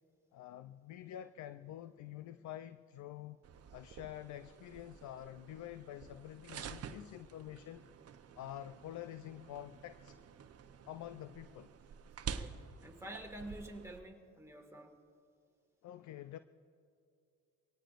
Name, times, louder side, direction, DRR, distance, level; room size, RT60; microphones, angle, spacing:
voice 1, 0.3-3.4 3.7-7.8 8.4-10.2 10.9-11.7 15.8-16.4, left 12 dB, 70° left, 0.5 m, -47 dB
sound 1, 3.4-14.0, right 7 dB, 55° right, 0.8 m, -49 dB
voice 2, 12.2-15.0, right 1 dB, 10° right, 2.0 m, -49 dB
24.5 x 18.0 x 2.5 m
cardioid pair, 90°, 30 cm